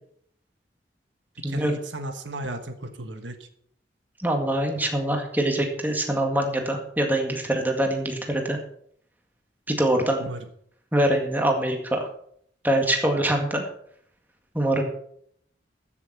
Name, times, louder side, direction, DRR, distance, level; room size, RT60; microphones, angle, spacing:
voice 1, 1.5-3.5 10.2-10.4, right 1 dB, 85° right, 7 dB, 1.4 m, -35 dB
voice 2, 4.2-8.6 9.7-10.3 10.9-12.1 12.6-13.6 14.5-14.8, right 1 dB, 10° right, 2 dB, 2.0 m, -24 dB
14.5 x 7.0 x 5.9 m, 0.66 s
head